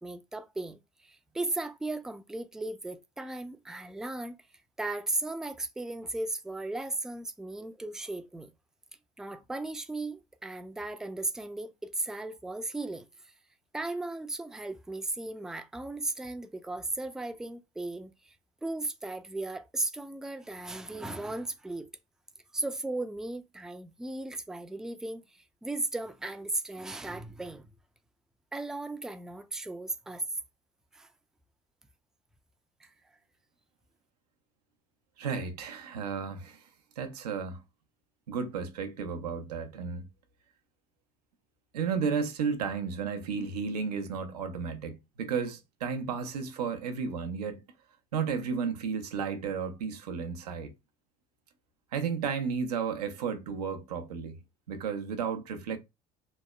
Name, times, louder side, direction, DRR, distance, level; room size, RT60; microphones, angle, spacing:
voice 1, 0.0-4.4 4.8-8.5 9.2-13.1 13.7-18.3 18.6-21.9 22.5-27.7 28.5-30.2 30.9-31.1 32.8-32.9, right 2 dB, 5° right, 0.3 m, -36 dB
voice 2, 35.2-36.6 37.0-37.6 38.3-40.1 41.7-47.6 48.1-50.7 51.9-54.4 54.7-55.8, right 6 dB, 90° right, 0.5 m, -33 dB
2.9 x 2.0 x 2.2 m
hypercardioid pair, 65°, 20 cm